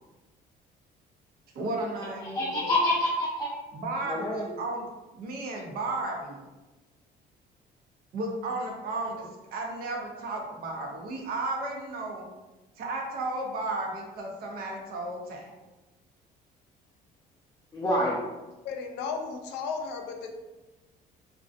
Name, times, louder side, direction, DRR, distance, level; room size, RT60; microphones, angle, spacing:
voice 1, 1.5-2.7 3.7-4.9 5.1-6.4 8.1-12.3 12.8-15.5, right 2 dB, 65° right, 0 dB, 0.6 m, -34 dB
voice 2, 2.2-3.5 4.1-4.5 17.7-18.2, left 1 dB, 20° left, -5 dB, 0.4 m, -27 dB
voice 3, 18.6-20.3, left 5 dB, 85° left, 3 dB, 0.4 m, -34 dB
2.5 x 2.2 x 2.5 m, 1.1 s
cardioid pair, 110°, 17 cm